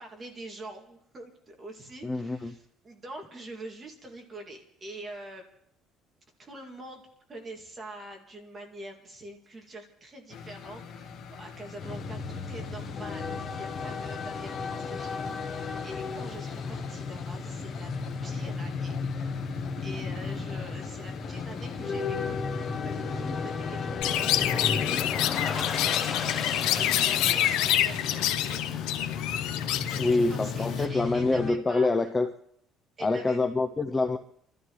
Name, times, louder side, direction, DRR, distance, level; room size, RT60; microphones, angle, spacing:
voice 1, 0.0-5.4 6.4-7.0 7.3-17.9 18.2-19.0 19.4-26.3 26.7-28.8 29.8-31.9 33.0-33.4, right 1 dB, 20° right, 1 dB, 2.4 m, -45 dB
voice 2, 2.0-2.5 30.0-32.3 33.0-34.2, left 3 dB, 15° left, 7 dB, 0.5 m, -26 dB
sound 1, 10.3-27.7, left 6 dB, 45° left, 1.5 m, -44 dB
sound 2, 11.8-31.5, left 5 dB, 30° left, 1.1 m, -34 dB
Chirp tweet, 24.0-30.9, left 12 dB, 85° left, 0.8 m, -27 dB
29.5 x 13.0 x 3.2 m, 0.71 s
cardioid pair, 175°, 0 cm